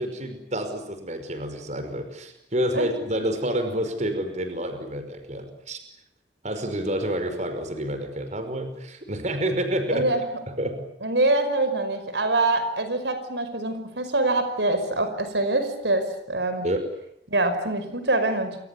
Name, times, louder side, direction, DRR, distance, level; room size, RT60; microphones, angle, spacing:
voice 1, 0.0-5.8 6.4-10.1 10.5-10.8 16.6-16.9, right 1 dB, 40° right, 8 dB, 5.3 m, -28 dB
voice 2, 9.9-10.3 11.0-16.7 17.3-18.6, right 2 dB, 85° right, 10 dB, 5.5 m, -24 dB
30.0 x 27.0 x 7.1 m, 0.73 s
head